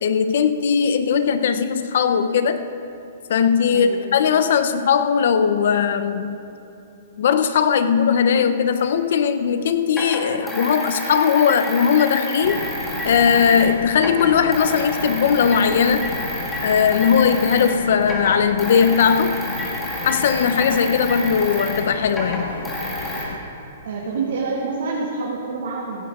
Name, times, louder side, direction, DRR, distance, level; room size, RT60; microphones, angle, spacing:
voice 1, 0.0-2.6 3.3-6.4 7.2-12.6 13.0-16.1 16.6-19.5 20.0-22.5, left 7 dB, 50° left, 10 dB, 0.7 m, -19 dB
voice 2, 3.7-4.0 23.8-26.1, right 4 dB, 65° right, -4 dB, 2.1 m, -27 dB
sound 1, 8.8-8.9 9.9-13.7 13.9-17.8 18.0-23.2, equal, 5° left, 1.6 m, -30 dB
sound 2, 12.4-23.4, left 4 dB, 80° left, 1.2 m, -33 dB
16.0 x 15.5 x 3.7 m, 2.8 s
hypercardioid pair, 180°, 0 cm